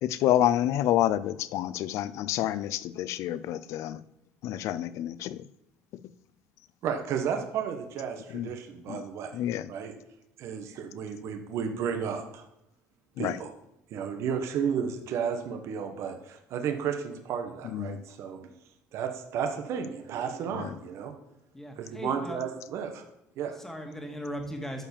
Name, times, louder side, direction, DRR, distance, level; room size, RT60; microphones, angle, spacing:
voice 1, 0.0-4.0 4.4-5.3 8.3-8.5 8.9-9.0 9.4-9.6 13.2-13.3 17.7-17.9, left 12 dB, 65° left, 0.5 m, -28 dB
voice 2, 6.8-9.3 9.7-9.9 10.4-12.5 13.2-13.5 13.9-18.4 18.9-21.1 21.8-23.0 23.4-23.6, right 7 dB, 60° right, 1.4 m, -33 dB
voice 3, 21.5-22.4 23.6-24.9, equal, 5° left, 2.0 m, -38 dB
12.0 x 4.9 x 7.2 m
supercardioid pair, 110°, 5 cm